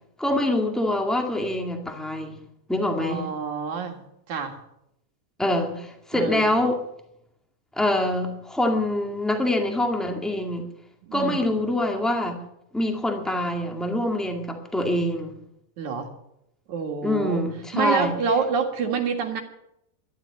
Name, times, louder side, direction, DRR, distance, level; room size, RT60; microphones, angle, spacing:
voice 1, 0.2-2.4 2.7-3.3 5.4-6.8 7.7-10.6 11.1-12.4 12.7-15.4 17.0-18.2, left 1 dB, ahead, 3 dB, 0.9 m, -25 dB
voice 2, 3.0-4.0 4.3-4.5 6.1-6.4 11.1-11.5 15.8-16.1 16.7-17.4 17.7-19.4, right 6 dB, 65° right, 3 dB, 3.1 m, -27 dB
12.5 x 12.0 x 8.6 m, 0.79 s
omnidirectional pair, 3.8 m